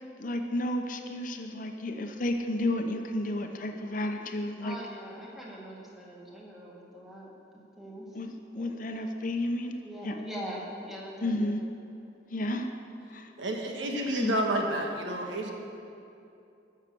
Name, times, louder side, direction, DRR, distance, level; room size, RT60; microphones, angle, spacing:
voice 1, 0.2-4.8 8.1-9.8 10.0-10.2 11.2-11.6 12.3-12.7 13.1-13.3 14.2-14.4, left 1 dB, 45° left, 5 dB, 0.7 m, -32 dB
voice 2, 4.6-7.3 7.8-8.2 8.5-8.8 9.8-11.6, equal, ahead, -4 dB, 1.8 m, -42 dB
voice 3, 13.4-15.5, right 1 dB, 90° right, 1 dB, 1.5 m, -30 dB
13.5 x 6.6 x 6.8 m, 2.7 s
head